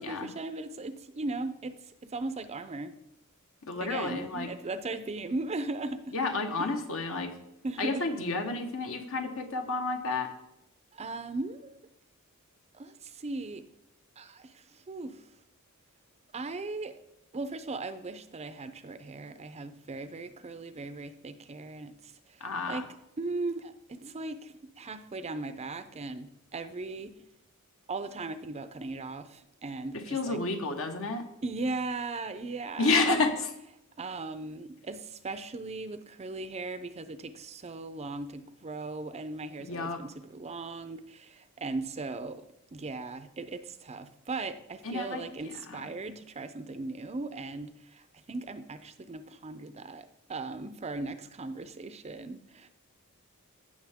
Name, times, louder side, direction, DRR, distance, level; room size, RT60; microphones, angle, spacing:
voice 1, 0.0-3.0 3.8-6.1 6.6-6.7 7.6-8.2 10.9-11.8 12.7-13.7 14.2-15.2 16.3-17.0 17.3-22.4 22.7-22.9 23.2-27.2 27.9-30.4 31.4-33.2 34.0-42.5 42.7-52.7, right 3 dB, 30° right, 0.5 m, -38 dB
voice 2, 3.6-4.5 6.1-7.3 7.8-10.3 22.4-22.8 29.9-31.2 32.8-33.5 39.7-40.0 44.8-45.2 45.7-45.9, left 3 dB, 65° left, 1.3 m, -30 dB
16.0 x 6.6 x 3.6 m
head